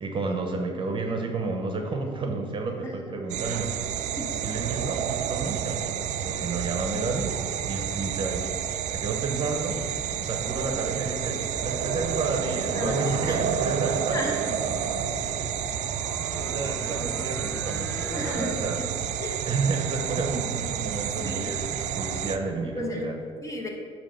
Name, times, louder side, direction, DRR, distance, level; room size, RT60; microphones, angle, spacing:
voice 1, 0.0-3.8 4.4-5.9 6.2-8.5 8.9-9.8 10.2-14.2 15.7-16.0 16.3-18.8 19.4-23.1, right 3 dB, 35° right, 3 dB, 0.9 m, -31 dB
voice 2, 2.8-3.2 4.2-4.4 12.7-13.4 14.1-14.8 17.8-18.9 19.2-19.4 21.2-21.6 22.7-23.7, left 2 dB, 20° left, 0 dB, 1.3 m, -35 dB
sound 1, 3.3-22.4, right 9 dB, 60° right, 0.4 m, -30 dB
sound 2, 9.3-18.5, left 1 dB, 5° left, 0.4 m, -42 dB
8.7 x 2.9 x 5.7 m, 2.2 s
supercardioid pair, 90°, 14 cm